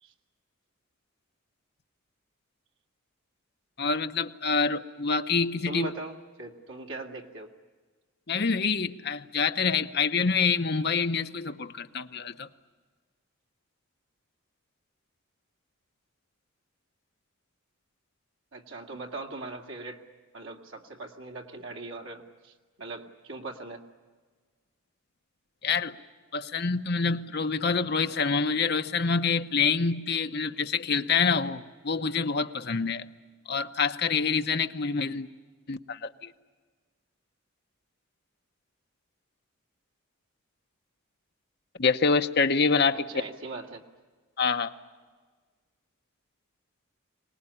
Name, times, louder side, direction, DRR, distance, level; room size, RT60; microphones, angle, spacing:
voice 1, 3.8-5.9 8.3-12.5 25.6-25.9 26.3-33.0 33.5-35.3 35.7-36.3 41.8-43.0 44.4-44.7, left 5 dB, 50° left, 8 dB, 0.9 m, -26 dB
voice 2, 5.7-7.5 18.5-20.0 20.3-23.8 42.9-43.8, right 2 dB, 70° right, 2 dB, 2.4 m, -40 dB
25.5 x 19.0 x 9.9 m, 1.4 s
head